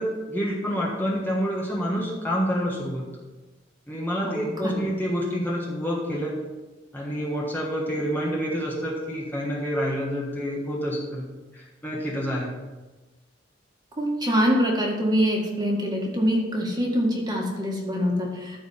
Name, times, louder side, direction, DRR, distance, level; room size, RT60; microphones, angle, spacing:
voice 1, 0.0-3.1 3.9-6.3 6.9-11.3 11.5-12.5, equal, 10° left, -4 dB, 1.4 m, -28 dB
voice 2, 4.2-4.8 14.0-18.6, equal, 20° right, -1 dB, 1.9 m, -24 dB
14.0 x 4.7 x 5.7 m, 1.2 s
head